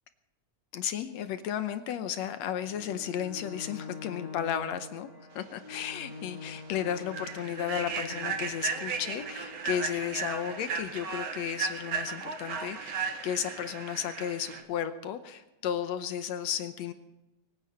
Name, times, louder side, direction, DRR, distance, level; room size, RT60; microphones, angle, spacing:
voice 1, 0.7-5.1 5.4-16.9, left 9 dB, 75° left, 10 dB, 1.9 m, -34 dB
Bowed string instrument, 2.6-9.6, left 5 dB, 30° left, 5.6 m, -45 dB
Human voice / Train, 5.7-5.9 6.3-6.5 7.0-14.6, right 6 dB, 50° right, 1.9 m, -35 dB
24.0 x 9.5 x 5.6 m, 1.0 s
omnidirectional pair, 3.4 m